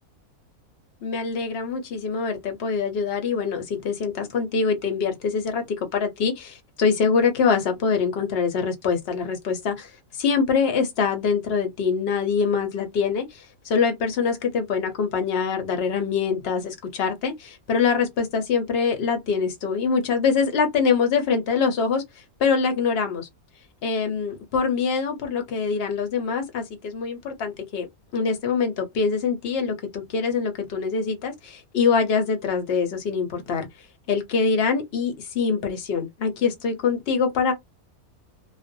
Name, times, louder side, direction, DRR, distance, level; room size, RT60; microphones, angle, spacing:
voice 1, 1.0-9.9 10.2-22.0 22.4-23.3 23.8-27.9 28.1-33.7 34.1-37.5, left 5 dB, 55° left, 0.8 m, -24 dB
2.4 x 2.1 x 2.6 m
omnidirectional pair, 1.6 m